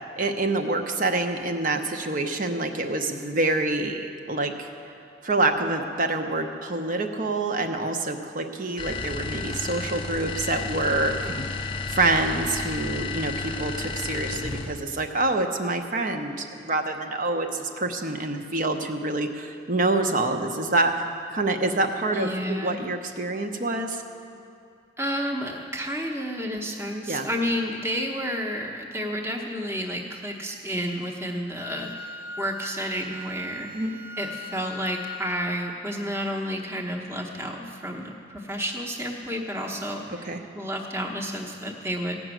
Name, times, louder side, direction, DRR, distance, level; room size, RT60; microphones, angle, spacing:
voice 1, 0.2-4.7 5.2-11.6 11.9-20.9 21.3-24.0 27.1-27.3 33.7-33.9 40.2-40.4, right 2 dB, 45° right, 5 dB, 0.9 m, -26 dB
sound 1, 8.8-14.9, left 4 dB, 25° left, 0.5 m, -32 dB
voice 2, 22.1-22.8 25.0-33.9 34.2-42.2, equal, 15° right, 0 dB, 0.9 m, -31 dB
Wind instrument woodwind instrument, 31.6-35.4, left 3 dB, 85° right, 1.5 m, -39 dB
16.0 x 6.1 x 9.0 m, 2.5 s
head